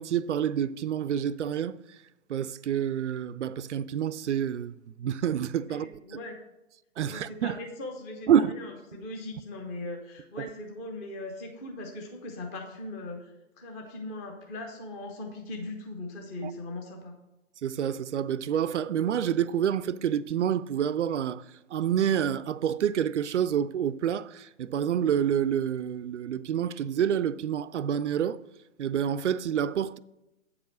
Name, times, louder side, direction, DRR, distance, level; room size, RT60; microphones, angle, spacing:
voice 1, 0.0-1.8 2.3-5.9 7.0-7.6 8.3-8.5 16.4-16.5 17.6-21.4 21.7-28.4 28.8-30.0, right 9 dB, 60° right, 0.5 m, -28 dB
voice 2, 5.7-6.4 7.1-17.1, left 2 dB, 10° left, 0.6 m, -39 dB
8.7 x 4.8 x 6.2 m
hypercardioid pair, 150°, 40 cm